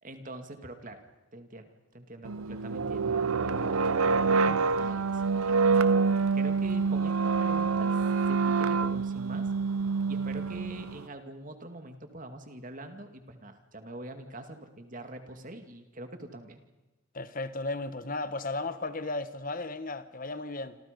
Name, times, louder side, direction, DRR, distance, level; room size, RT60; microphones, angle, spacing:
voice 1, 0.0-1.0 1.3-5.9 6.3-8.0 8.3-9.5 10.1-16.6, right 1 dB, 40° right, 2.4 m, -44 dB
sound 1, 2.3-11.0, right 4 dB, 85° right, 0.8 m, -26 dB
voice 2, 17.1-20.8, left 2 dB, 40° left, 1.3 m, -35 dB
28.0 x 27.0 x 5.3 m
head